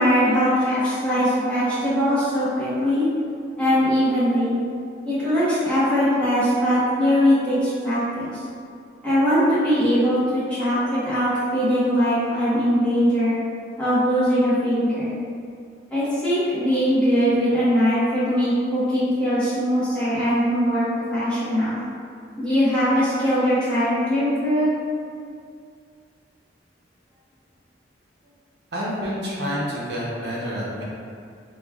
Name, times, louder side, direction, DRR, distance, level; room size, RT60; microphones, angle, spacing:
voice 1, 0.0-3.1 3.6-4.6 5.1-8.3 9.0-13.4 13.8-15.2 15.9-20.8 21.1-21.8 22.4-24.7, equal, 5° left, -13 dB, 0.9 m, -21 dB
voice 2, 28.7-30.8, equal, 60° right, -6 dB, 0.6 m, -28 dB
3.0 x 2.3 x 2.3 m, 2.3 s
head